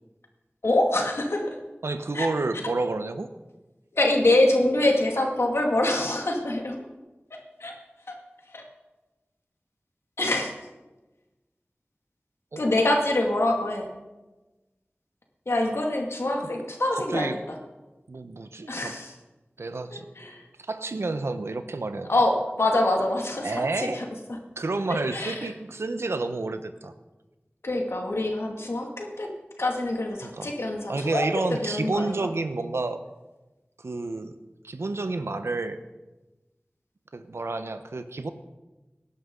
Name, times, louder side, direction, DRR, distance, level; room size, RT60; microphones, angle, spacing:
voice 1, 0.6-1.6 2.1-2.3 4.0-6.8 7.6-7.7 8.1-8.2 8.5-8.6 10.2-10.5 12.6-13.9 15.5-17.6 18.7-19.1 19.9-20.4 22.1-24.4 24.9-25.5 27.6-29.3 29.6-32.1, left 1 dB, 80° left, 1 dB, 2.3 m, -25 dB
voice 2, 1.8-3.3 12.5-12.6 16.4-16.5 17.1-17.4 18.1-18.9 19.6-20.1 20.6-22.1 23.4-24.0 24.6-26.9 30.2-30.6 30.9-33.0 33.8-34.3 34.6-35.8 37.1-38.3, right 3 dB, 90° right, 9 dB, 0.8 m, -30 dB
18.5 x 11.0 x 3.8 m, 1.1 s
wide cardioid pair, 40°, 4 cm